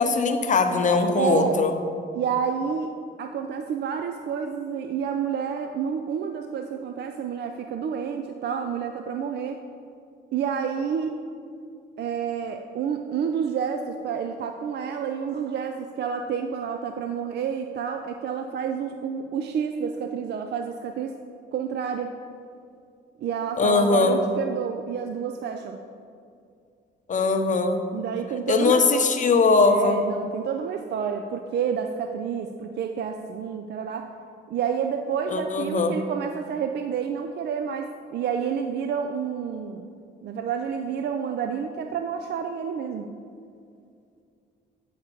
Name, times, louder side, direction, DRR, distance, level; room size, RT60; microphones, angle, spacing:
voice 1, 0.0-1.8 23.6-24.2 27.1-27.8 28.5-30.0 35.3-36.0, left 4 dB, 40° left, 5 dB, 0.8 m, -21 dB
voice 2, 1.2-1.6 2.1-2.9 3.2-9.6 10.3-11.2 12.0-21.1 21.5-22.1 23.2-25.8 27.9-28.8 29.7-34.1 34.5-39.9 40.2-43.1, right 7 dB, 60° right, 6 dB, 0.4 m, -29 dB
8.7 x 5.0 x 4.5 m, 2.4 s
cardioid pair, 90°, 20 cm